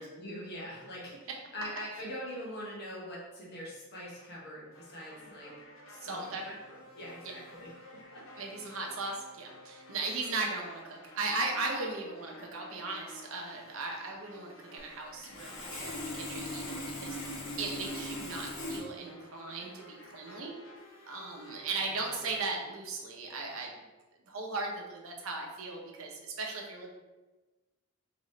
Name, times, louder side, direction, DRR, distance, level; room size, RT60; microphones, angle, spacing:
voice 1, 0.0-5.5 5.9-8.7, equal, 50° left, -5 dB, 1.3 m, -43 dB
sound 1, 4.1-22.4, left 1 dB, 70° left, 0.7 m, -54 dB
voice 2, 6.0-6.5 8.4-20.6 21.1-23.7 24.3-26.9, right 3 dB, 80° right, 0 dB, 0.7 m, -37 dB
Sawing, 14.8-14.9 15.2-18.8, left 1 dB, 90° left, 1.1 m, -39 dB
3.8 x 3.0 x 3.1 m, 1.2 s
head